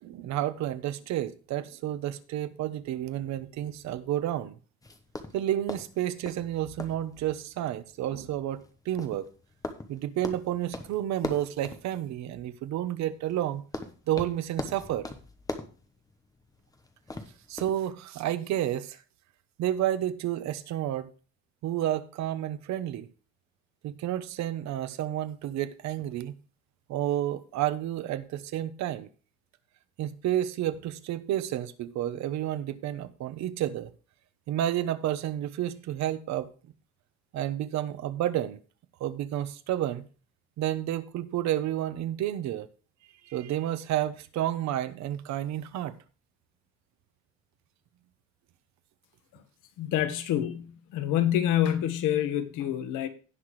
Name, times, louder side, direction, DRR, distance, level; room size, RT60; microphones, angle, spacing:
voice 1, 0.0-4.5 5.3-9.3 9.9-13.6 14.1-15.1 17.5-19.0 19.6-21.1 21.6-23.1 23.8-26.3 26.9-29.1 30.0-33.9 34.5-36.5 37.3-38.6 39.0-40.0 40.6-42.7 43.2-45.9, right 12 dB, 65° right, 1.0 m, -30 dB
sound 1, 4.8-17.9, left 2 dB, 10° left, 1.0 m, -42 dB
voice 2, 49.8-53.1, left 11 dB, 85° left, 1.6 m, -27 dB
17.0 x 5.9 x 3.2 m
cardioid pair, 175°, 30 cm